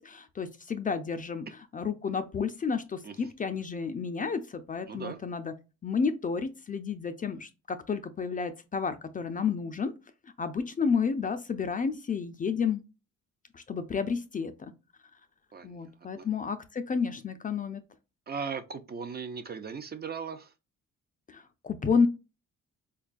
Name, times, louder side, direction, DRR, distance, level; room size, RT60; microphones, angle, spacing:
voice 1, 0.0-1.5 1.7-5.5 5.8-9.9 10.4-12.8 13.5-14.7 15.6-17.8 21.3-22.1, left 5 dB, 30° left, 0.4 m, -31 dB
voice 2, 4.9-5.2 15.5-16.3 18.3-20.5, right 5 dB, 35° right, 0.4 m, -38 dB
4.4 x 2.3 x 2.4 m
cardioid pair, 90°, 30 cm